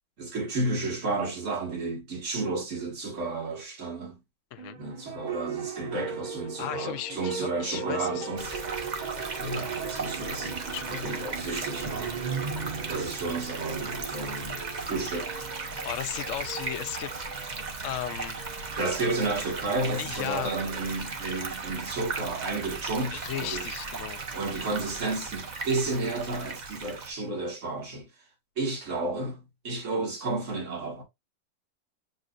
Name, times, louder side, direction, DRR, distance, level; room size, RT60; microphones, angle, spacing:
voice 1, 0.2-4.2 4.8-8.6 9.4-12.2 12.9-15.3 18.8-23.7 24.3-28.1 28.6-31.0, right 3 dB, 55° right, 2.1 m, -32 dB
sound 1, 4.6-20.2, right 5 dB, 70° right, 1.8 m, -40 dB
voice 2, 6.6-8.5 10.7-11.5 15.8-17.1 17.8-18.6 20.0-20.5 23.1-24.2, left 11 dB, 65° left, 0.8 m, -36 dB
sound 2, 8.4-27.1, right 4 dB, 35° right, 0.8 m, -36 dB
7.6 x 2.6 x 2.4 m
omnidirectional pair, 1.6 m